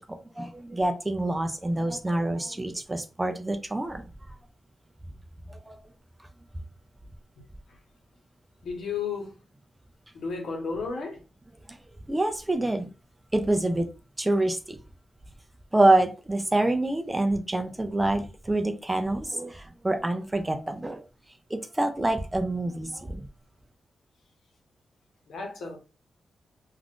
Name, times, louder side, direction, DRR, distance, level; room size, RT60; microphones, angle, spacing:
voice 1, 0.0-4.0 5.5-5.8 11.7-11.8 12.1-12.9 13.3-13.9 14.2-14.8 15.7-21.0 21.5-23.3, right 2 dB, 10° right, 0.3 m, -26 dB
voice 2, 8.6-9.3 10.1-11.2 25.3-25.8, left 5 dB, 80° left, 0.9 m, -33 dB
2.4 x 2.3 x 3.5 m
wide cardioid pair, 165°, 0 cm